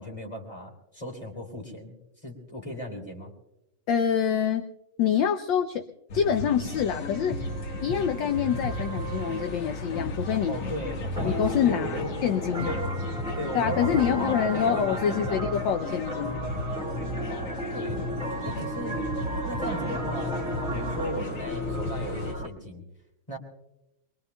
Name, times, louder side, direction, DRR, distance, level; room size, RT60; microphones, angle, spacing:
voice 1, 0.0-2.0 2.2-3.3 10.5-12.1 12.6-15.4 17.3-18.0 18.4-19.0 19.4-22.8 23.3-23.4, equal, 15° left, 2 dB, 2.7 m, -36 dB
voice 2, 3.9-4.7 5.0-5.8 6.1-7.4 7.8-10.6 11.2-12.8 13.5-16.4, left 8 dB, 70° left, 7 dB, 1.3 m, -26 dB
sound 1, 6.1-22.3, left 1 dB, 90° left, 2.5 m, -34 dB
sound 2, 11.2-22.5, right 1 dB, 5° right, 0.9 m, -35 dB
23.0 x 22.5 x 2.2 m, 0.92 s
omnidirectional pair, 2.3 m